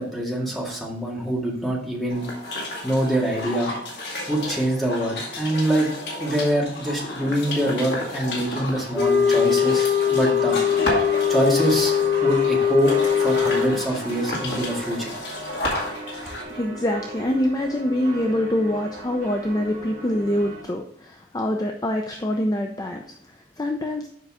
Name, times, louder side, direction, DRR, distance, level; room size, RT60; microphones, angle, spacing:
voice 1, 0.0-2.3 2.8-3.7 4.3-5.9 6.2-10.6 11.3-11.9 12.2-15.1, right 1 dB, ahead, -3 dB, 2.0 m, -24 dB
sound 1, 2.1-16.4, left 1 dB, 70° left, 2.1 m, -32 dB
sound 2, 8.9-13.8, left 8 dB, 50° left, 1.5 m, -21 dB
sound 3, 10.7-20.6, right 1 dB, 40° right, 2.2 m, -37 dB
voice 2, 16.5-24.1, left 1 dB, 20° left, 3 dB, 0.5 m, -25 dB
7.5 x 5.4 x 3.5 m, 0.69 s
head